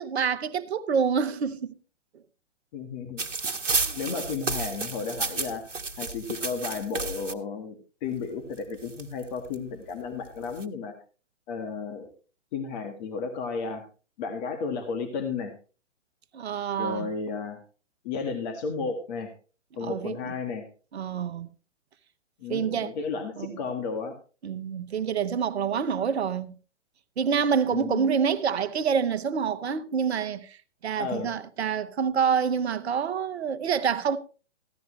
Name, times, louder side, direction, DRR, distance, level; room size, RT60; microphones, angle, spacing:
voice 1, 0.0-1.7 3.8-4.0 16.3-17.1 19.8-20.3 20.9-21.5 22.5-22.9 23.4-23.5 24.4-26.6 27.2-34.2, right 7 dB, 60° right, 1.0 m, -27 dB
voice 2, 2.7-3.3 4.0-5.6 6.0-10.9 11.5-12.1 12.5-13.8 14.2-15.5 16.8-17.6 18.0-19.3 19.8-20.6 22.4-24.1 27.7-28.1 31.0-31.3, left 5 dB, 35° left, 1.7 m, -33 dB
sound 1, 3.2-7.3 8.2-8.3 8.6-9.5 10.3-10.6, right 4 dB, 80° right, 1.4 m, -31 dB
15.0 x 11.5 x 3.2 m
figure-of-eight pair, 125°, 36 cm